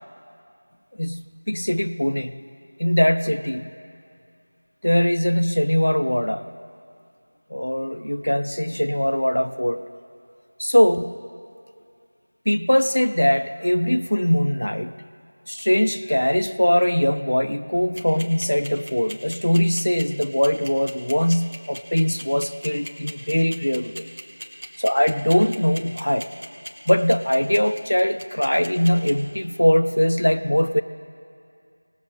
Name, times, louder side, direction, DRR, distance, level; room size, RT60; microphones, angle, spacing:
voice 1, 1.0-2.3 2.8-3.8 4.8-6.5 7.5-9.8 10.6-11.1 12.5-15.0 15.5-24.1 24.8-26.3 26.9-30.8, equal, 85° left, 11 dB, 0.5 m, -21 dB
sound 1, 17.8-29.1, equal, 50° right, 1.7 m, -36 dB
20.0 x 7.6 x 4.1 m, 2.4 s
figure-of-eight pair, 180°, 0 cm